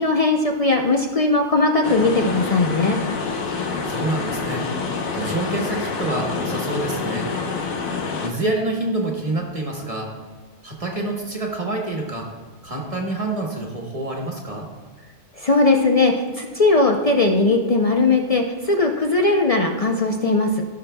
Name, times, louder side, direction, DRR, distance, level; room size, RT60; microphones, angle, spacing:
voice 1, 0.0-3.0 15.4-20.6, left 3 dB, 60° left, 2 dB, 0.4 m, -19 dB
sound 1, 1.8-8.3, left 4 dB, 85° left, 1.3 m, -27 dB
voice 2, 3.8-4.6 5.1-7.3 8.2-10.1 10.6-12.3 12.6-14.7, right 2 dB, 30° right, 0 dB, 1.1 m, -27 dB
16.5 x 5.9 x 2.2 m, 1.4 s
omnidirectional pair, 1.4 m